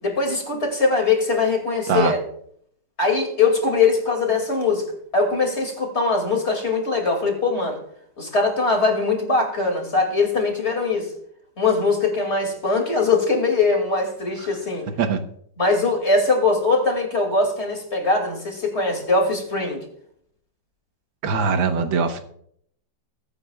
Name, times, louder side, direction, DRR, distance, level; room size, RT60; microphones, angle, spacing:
voice 1, 0.0-2.2 3.0-4.9 5.1-7.8 8.2-11.1 11.6-14.9 15.6-19.8, left 3 dB, 35° left, 3 dB, 2.7 m, -21 dB
voice 2, 21.2-22.2, right 5 dB, 85° right, 7 dB, 1.9 m, -21 dB
21.5 x 9.2 x 2.4 m, 0.66 s
omnidirectional pair, 2.0 m